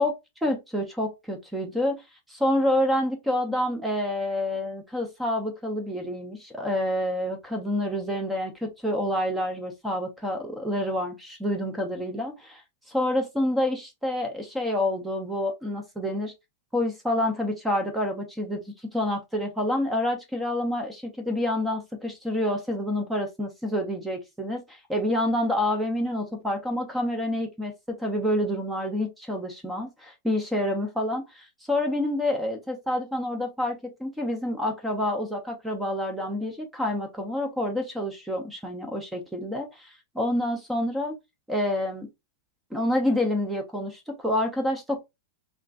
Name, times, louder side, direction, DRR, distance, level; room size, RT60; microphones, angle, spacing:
voice 1, 0.4-2.0 2.3-12.6 12.9-16.3 16.7-18.6 18.9-41.2 41.5-42.1 42.7-45.0, left 1 dB, 5° right, 0.5 m, -28 dB
3.6 x 2.4 x 2.2 m
supercardioid pair, 165°, 0 cm